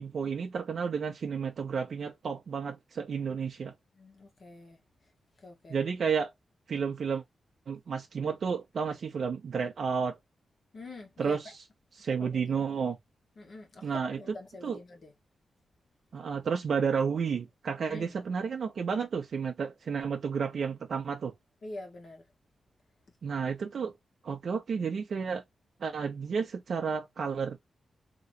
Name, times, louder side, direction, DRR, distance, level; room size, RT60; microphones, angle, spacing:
voice 1, 0.0-3.7 5.7-6.3 6.7-7.2 7.7-10.1 11.2-11.5 12.0-13.0 13.8-14.2 14.6-14.8 16.1-21.3 23.2-23.9 24.2-25.4 25.8-27.6, right 6 dB, 65° right, 0.7 m, -31 dB
voice 2, 3.9-4.8 5.4-5.8 10.7-11.5 12.2-12.6 13.4-15.1 17.9-18.2 21.6-22.2, left 2 dB, 55° left, 1.2 m, -45 dB
3.1 x 2.9 x 2.6 m
cardioid pair, 90°, 0 cm